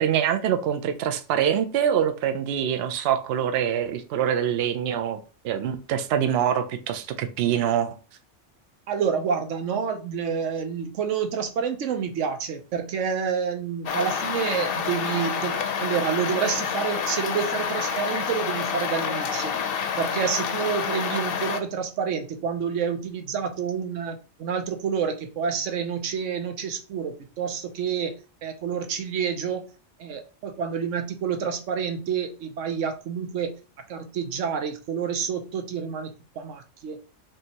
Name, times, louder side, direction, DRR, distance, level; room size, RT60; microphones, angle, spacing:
voice 1, 0.0-5.2 5.4-8.0, right 9 dB, 65° right, 7 dB, 0.7 m, -24 dB
voice 2, 8.9-19.5 20.0-28.1 28.4-29.7 30.0-33.5 33.9-37.0, right 7 dB, 85° right, 7 dB, 1.0 m, -28 dB
sound 1, 13.9-21.6, left 6 dB, 60° left, 0.7 m, -28 dB
5.4 x 2.8 x 2.8 m, 0.35 s
omnidirectional pair, 1.3 m